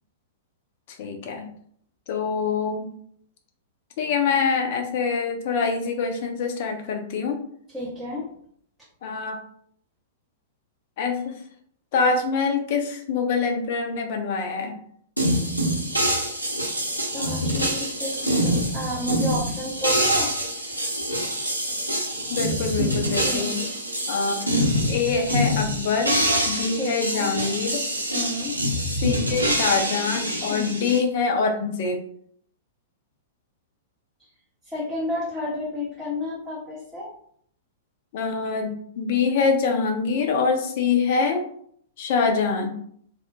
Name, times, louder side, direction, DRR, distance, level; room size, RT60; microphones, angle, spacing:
voice 1, 0.9-1.5 2.1-2.9 4.0-7.4 9.0-9.4 11.0-11.4 11.9-14.7 22.3-23.6 24.1-24.4 24.9-26.2 26.5-27.8 29.0-32.0 38.1-41.4 42.0-42.7, left 5 dB, 50° left, 4 dB, 0.5 m, -25 dB
voice 2, 7.7-8.3 17.1-20.3 23.2-23.5 26.8-27.3 28.1-28.6 30.5-30.8 34.2-34.3 34.6-37.1, left 1 dB, ahead, -7 dB, 0.6 m, -31 dB
sound 1, 15.2-31.0, equal, 90° right, 0.6 m, -25 dB
2.2 x 2.0 x 2.9 m, 0.64 s
figure-of-eight pair, 100°, 0 cm